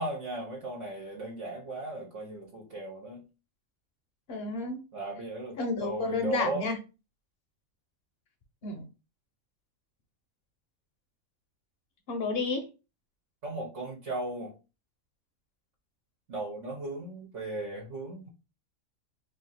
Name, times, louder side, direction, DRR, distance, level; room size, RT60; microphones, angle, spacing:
voice 1, 0.0-3.2 4.9-6.7 13.4-14.5 16.3-18.3, right 2 dB, 65° right, -2 dB, 1.2 m, -36 dB
voice 2, 4.3-4.8 5.6-6.8 8.6-8.9 12.1-12.7, left 3 dB, 55° left, 5 dB, 1.0 m, -31 dB
2.9 x 2.7 x 4.0 m, 0.30 s
omnidirectional pair, 1.3 m